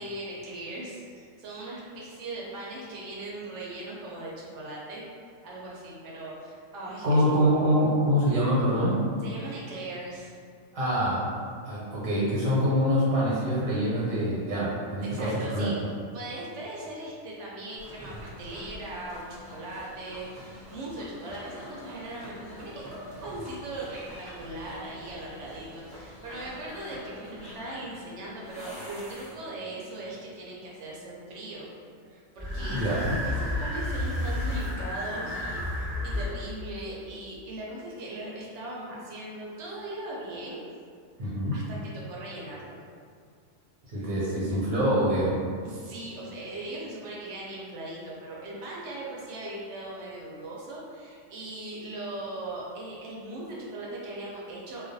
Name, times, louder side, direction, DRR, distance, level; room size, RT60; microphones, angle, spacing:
voice 1, 0.0-5.0 5.4-7.3 9.2-10.3 15.0-15.8 16.1-31.7 32.1-32.9 33.3-40.6 41.2-41.8 42.1-42.8 43.9-44.1 45.6-54.9, right 2 dB, 65° right, -5 dB, 0.8 m, -39 dB
voice 2, 7.0-9.0 10.7-11.2 11.6-15.7 32.7-33.2 41.2-41.6 43.9-45.3, equal, 85° right, -8 dB, 1.1 m, -25 dB
sound 1, 17.8-29.7 32.4-36.3, left 1 dB, 10° left, 0.5 m, -36 dB
2.3 x 2.2 x 2.6 m, 2.2 s
omnidirectional pair, 1.4 m